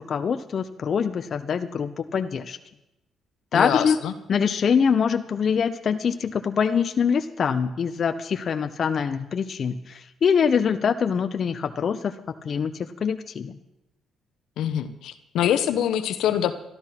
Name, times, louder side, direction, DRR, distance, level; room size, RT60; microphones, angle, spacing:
voice 1, 0.0-2.6 3.5-4.0 4.3-12.1 12.4-13.6, left 6 dB, 50° left, 9 dB, 0.7 m, -24 dB
voice 2, 3.5-4.1 14.6-16.5, left 10 dB, 80° left, 11 dB, 1.0 m, -24 dB
12.5 x 12.5 x 5.9 m, 0.90 s
cardioid pair, 90°, 0 cm